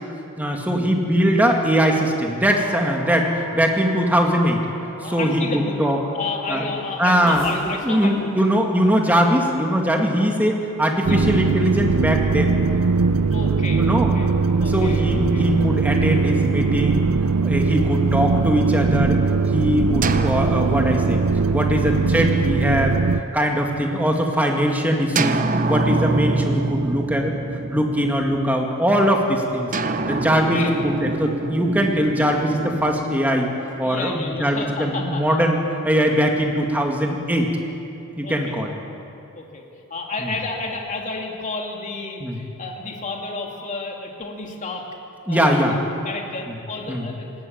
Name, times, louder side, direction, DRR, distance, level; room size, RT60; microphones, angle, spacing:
voice 1, 0.4-4.7 5.0-6.0 6.5-6.6 7.0-12.6 13.7-14.1 14.7-17.1 17.4-19.2 19.5-21.2 21.5-23.0 23.3-25.4 25.7-27.3 27.7-29.7 30.1-33.5 33.8-35.6 35.8-37.5 38.2-38.7 40.2-40.3 42.2-42.4 45.3-45.7 46.9-47.1, equal, 5° right, 1 dB, 2.2 m, -21 dB
sound 1, 2.5-10.6, right 1 dB, 55° right, 4.4 m, -41 dB
voice 2, 5.0-5.9 6.1-8.5 11.0-11.2 13.3-14.3 14.6-15.5 30.3-30.8 33.8-35.4 38.2-38.6 39.3-39.6 39.9-44.9 45.3-45.6 46.0-47.3, left 3 dB, 35° left, 0 dB, 2.7 m, -31 dB
sound 2, 11.0-23.2, right 4 dB, 85° right, 0.5 m, -20 dB
sound 3, 20.0-23.8 25.2-28.7 29.7-33.9, right 2 dB, 35° right, 0.8 m, -26 dB
20.0 x 16.0 x 8.8 m, 2.8 s
head